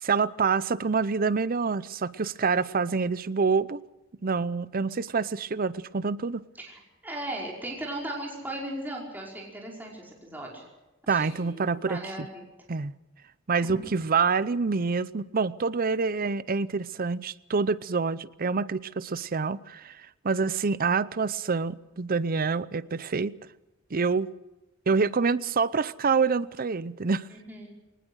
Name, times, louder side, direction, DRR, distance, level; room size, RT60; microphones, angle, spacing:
voice 1, 0.0-3.8 4.2-6.4 11.1-12.3 12.7-12.9 13.5-23.3 23.9-24.3 24.9-27.3, right 5 dB, 45° right, 0.6 m, -27 dB
voice 2, 6.6-10.7 11.1-12.4 13.6-13.8 27.3-27.7, right 1 dB, 10° right, 5.3 m, -37 dB
22.5 x 19.5 x 6.4 m
head